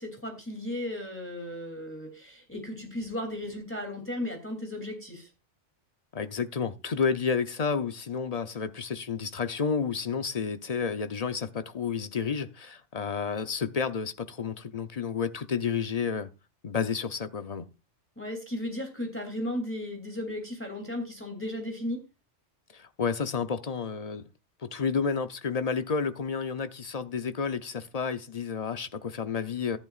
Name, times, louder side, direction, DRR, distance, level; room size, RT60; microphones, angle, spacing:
voice 1, 0.0-5.3 18.2-22.0, left 1 dB, 10° left, 2.9 m, -35 dB
voice 2, 6.1-16.3 16.6-17.6 22.7-24.2 24.6-29.8, left 6 dB, 40° left, 0.7 m, -31 dB
14.0 x 10.5 x 2.4 m
omnidirectional pair, 1.2 m